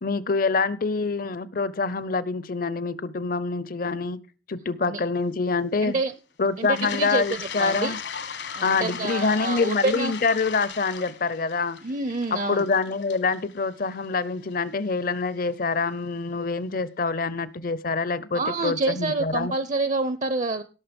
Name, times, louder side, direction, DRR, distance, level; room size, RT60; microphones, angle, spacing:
voice 1, 0.0-4.2 4.5-6.0 6.4-8.0 8.6-11.8 12.3-19.5, left 4 dB, 50° left, 0.7 m, -26 dB
voice 2, 5.8-6.1 6.6-7.2 7.6-8.0 8.5-10.1 11.8-12.7 18.3-20.6, right 3 dB, 40° right, 0.6 m, -27 dB
Toilet flush, 6.6-14.5, left 6 dB, 65° left, 1.3 m, -37 dB
17.5 x 6.5 x 5.2 m
head